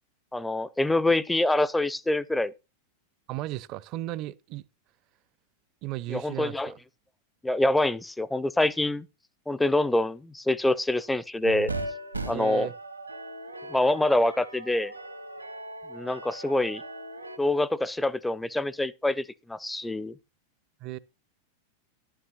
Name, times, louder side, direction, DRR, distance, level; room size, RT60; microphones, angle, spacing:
voice 1, 0.3-2.5 6.1-6.7 7.4-9.1 9.5-11.7 12.3-12.7 13.7-14.9 15.9-16.8 17.4-20.1, left 2 dB, 5° left, 0.6 m, -25 dB
voice 2, 3.3-4.6 5.8-6.7 12.3-12.7 20.8-21.0, right 16 dB, 40° right, 0.6 m, -35 dB
sound 1, 11.4-17.4, right 2 dB, 85° right, 1.6 m, -38 dB
11.0 x 8.9 x 4.0 m
figure-of-eight pair, 90°, 0 cm